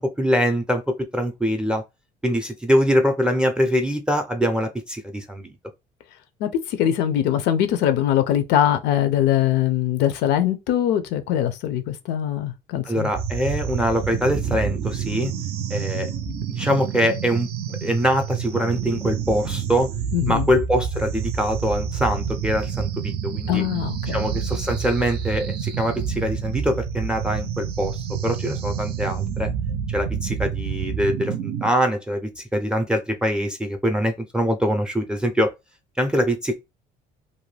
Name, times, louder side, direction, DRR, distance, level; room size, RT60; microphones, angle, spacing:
voice 1, 0.0-1.8 2.2-5.5 12.9-15.3 15.7-16.1 16.5-17.5 17.8-19.9 20.3-23.6 24.1-29.5 29.9-35.5 36.0-36.5, equal, 5° right, 0.5 m, -23 dB
voice 2, 6.4-13.1 20.1-20.5 23.5-24.2, left 11 dB, 90° left, 0.5 m, -22 dB
sound 1, 13.1-31.7, right 8 dB, 75° right, 0.5 m, -28 dB
2.6 x 2.2 x 3.2 m
cardioid pair, 110°, 17 cm